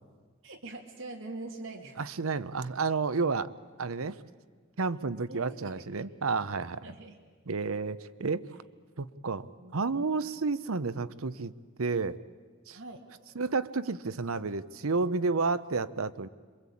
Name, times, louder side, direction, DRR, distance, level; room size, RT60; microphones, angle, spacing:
voice 1, 0.4-2.0 5.3-5.4 5.7-6.1 6.8-7.2 9.6-10.2 12.7-13.0, right 2 dB, 65° right, 0 dB, 2.6 m, -43 dB
voice 2, 2.0-3.5 3.8-4.2 4.8-6.8 7.5-8.5 9.0-9.5 9.7-11.5 11.8-12.2 12.7-12.8 13.3-16.3, right 4 dB, 85° right, 14 dB, 0.8 m, -31 dB
27.0 x 23.0 x 8.6 m, 1.5 s
head